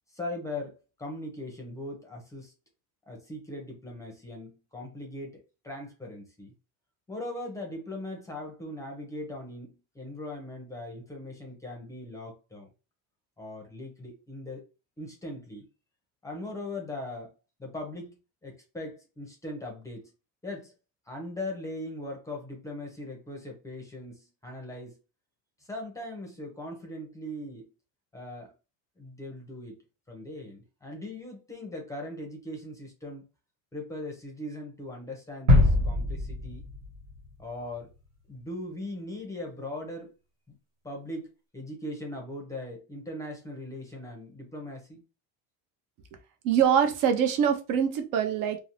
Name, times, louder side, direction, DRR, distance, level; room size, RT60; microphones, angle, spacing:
voice 1, 0.1-2.5 3.1-6.5 7.1-12.7 13.4-14.6 15.0-15.7 16.2-17.3 17.6-20.1 20.4-20.7 21.1-25.0 25.6-27.7 28.1-28.5 29.0-29.8 30.1-33.2 33.7-36.7 37.4-37.9 38.3-40.1 40.5-40.6 40.8-45.0, left 1 dB, 10° left, 0.5 m, -40 dB
sound 1, 35.5-37.4 37.8-37.9, left 1 dB, 90° right, 1.4 m, -23 dB
voice 2, 46.4-48.6, right 8 dB, 70° right, 0.6 m, -24 dB
2.6 x 2.0 x 2.9 m
cardioid pair, 160°, 34 cm